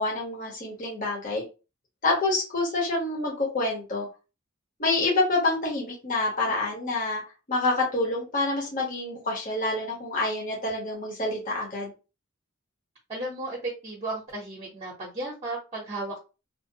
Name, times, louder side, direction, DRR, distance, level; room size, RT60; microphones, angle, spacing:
voice 1, 0.0-1.4 2.0-4.1 4.8-7.2 7.5-11.9, left 2 dB, 40° left, -2 dB, 1.0 m, -27 dB
voice 2, 13.1-16.2, right 2 dB, 30° right, -3 dB, 0.7 m, -34 dB
2.6 x 2.1 x 2.7 m, 0.31 s
head